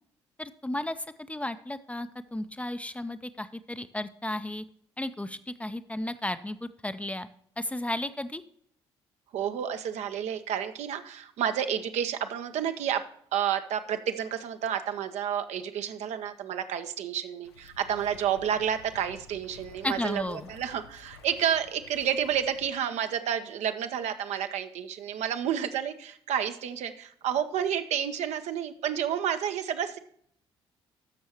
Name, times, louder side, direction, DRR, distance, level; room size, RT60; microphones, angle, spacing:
voice 1, 0.4-4.6 5.0-7.3 7.6-8.4 19.8-20.5, left 1 dB, 10° left, 11 dB, 0.6 m, -34 dB
voice 2, 9.3-13.0 13.3-30.0, right 9 dB, 60° right, 8 dB, 0.8 m, -30 dB
sound 1, 17.4-22.7, left 5 dB, 85° left, 0.5 m, -52 dB
13.5 x 6.4 x 2.9 m, 0.63 s
figure-of-eight pair, 45°, 13 cm